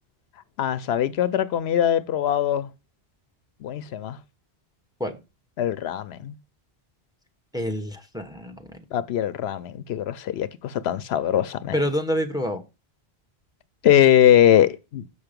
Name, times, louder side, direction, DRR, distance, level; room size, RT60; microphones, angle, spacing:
voice 1, 0.6-2.7 3.6-4.2 5.6-6.3 8.9-11.8 13.8-15.0, left 10 dB, 80° left, 0.8 m, -21 dB
voice 2, 7.5-8.8 11.7-12.6, equal, 5° right, 1.0 m, -27 dB
6.9 x 5.7 x 5.1 m
omnidirectional pair, 1.1 m